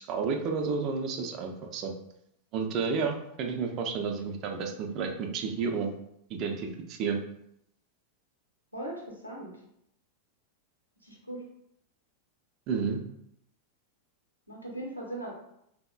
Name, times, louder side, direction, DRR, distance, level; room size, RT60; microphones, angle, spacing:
voice 1, 0.1-1.9 2.5-5.9 6.3-7.2 12.7-13.0, right 5 dB, 35° right, 3 dB, 0.4 m, -31 dB
voice 2, 8.7-9.5 11.0-11.4 14.5-15.3, right 1 dB, 85° left, -2 dB, 0.8 m, -39 dB
3.6 x 2.0 x 2.3 m, 0.75 s
figure-of-eight pair, 90°, 0 cm